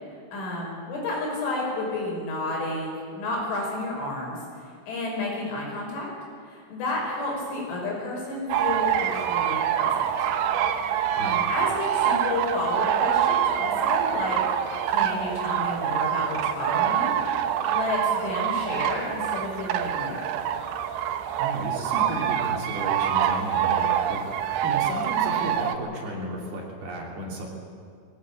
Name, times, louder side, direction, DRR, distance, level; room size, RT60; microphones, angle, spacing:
voice 1, 0.1-6.1 6.4-10.0 11.2-17.2 17.4-20.4, left 2 dB, 70° left, -2 dB, 7.8 m, -31 dB
sound 1, 8.5-25.8, right 9 dB, 75° right, 2.9 m, -25 dB
voice 2, 21.4-24.2 24.6-27.5, right 1 dB, 55° right, -2 dB, 4.7 m, -34 dB
21.0 x 17.0 x 8.7 m, 2.2 s
omnidirectional pair, 5.8 m